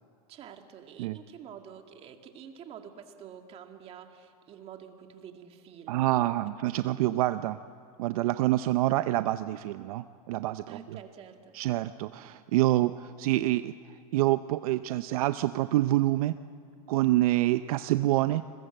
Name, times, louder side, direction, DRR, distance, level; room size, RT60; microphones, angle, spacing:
voice 1, 0.3-6.4 10.7-11.6, right 8 dB, 30° right, 5 dB, 2.1 m, -48 dB
voice 2, 5.9-7.6 8.0-10.8 11.5-13.7 14.1-16.3 16.9-18.4, right 16 dB, 70° right, 12 dB, 0.6 m, -26 dB
29.5 x 21.5 x 7.8 m, 2.3 s
supercardioid pair, 145°, 19 cm